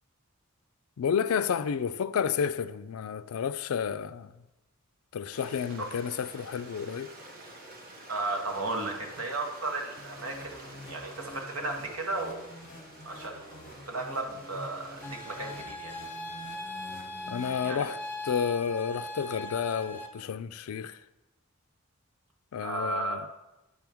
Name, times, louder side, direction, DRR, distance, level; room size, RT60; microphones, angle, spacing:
voice 1, 1.0-4.3 5.1-7.1 17.3-18.0 18.2-21.0 22.5-23.2, left 7 dB, 80° left, 0.4 m, -31 dB
Stream, 5.3-15.6, right 1 dB, 40° right, 1.2 m, -49 dB
voice 2, 8.1-12.4 13.0-15.9 17.6-17.9 22.6-23.2, right 2 dB, 75° right, 1.3 m, -34 dB
sound 1, 10.0-18.1, left 1 dB, 40° left, 1.0 m, -48 dB
sound 2, 15.0-20.1, left 1 dB, 10° left, 0.8 m, -39 dB
9.4 x 3.5 x 6.0 m
head